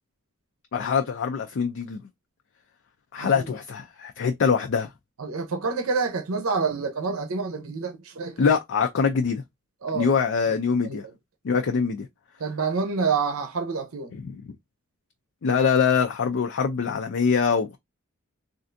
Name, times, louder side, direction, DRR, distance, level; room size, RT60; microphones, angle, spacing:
voice 1, 0.7-2.0 3.1-4.9 8.4-9.4 9.9-11.0 11.4-12.1 14.1-14.4 15.4-17.8, left 6 dB, 60° left, 0.4 m, -23 dB
voice 2, 5.2-8.4 9.8-10.1 10.5-10.6 10.8-11.0 12.4-14.1, right 4 dB, 70° right, 0.7 m, -27 dB
3.3 x 2.5 x 2.5 m
head